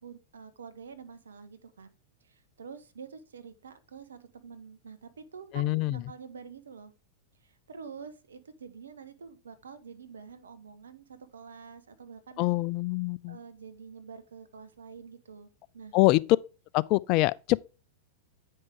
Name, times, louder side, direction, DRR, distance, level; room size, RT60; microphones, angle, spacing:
voice 1, 0.0-1.9 2.2-6.9 7.4-12.7 13.3-15.5 15.7-15.9, right 6 dB, 80° right, 1.2 m, -47 dB
voice 2, 5.5-6.0 12.4-13.4 15.9-16.2 16.7-17.6, left 20 dB, 45° left, 0.4 m, -25 dB
9.3 x 5.3 x 3.6 m
hypercardioid pair, 100°, 0 cm